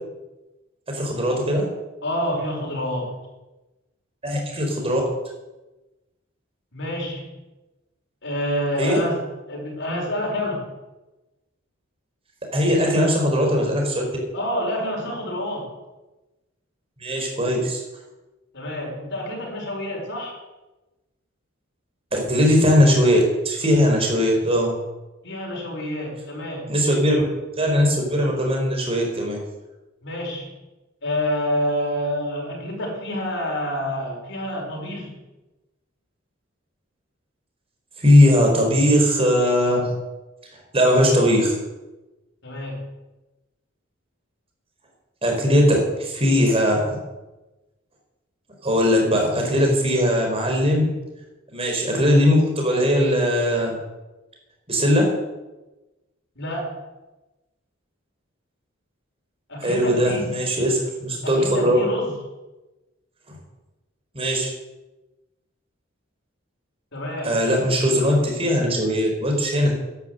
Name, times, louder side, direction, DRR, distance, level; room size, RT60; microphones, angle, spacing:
voice 1, 0.9-1.7 4.2-5.0 8.8-9.0 12.5-14.1 17.0-17.8 22.1-23.2 23.4-24.7 26.7-27.2 27.6-29.4 38.0-39.9 40.7-41.5 45.2-46.9 48.6-50.8 51.5-53.8 54.7-55.1 59.6-61.8 63.3-63.4 64.1-64.5 67.2-69.7, equal, 30° right, 1 dB, 4.6 m, -19 dB
voice 2, 2.0-3.2 6.7-7.4 8.2-9.2 9.5-10.7 14.3-15.7 18.5-20.4 25.2-26.8 30.0-30.5 31.0-35.3 42.4-42.9 56.4-56.8 59.5-60.3 61.2-62.2 66.9-67.4, equal, 65° left, -2 dB, 5.5 m, -28 dB
11.5 x 11.0 x 8.0 m, 1.1 s
head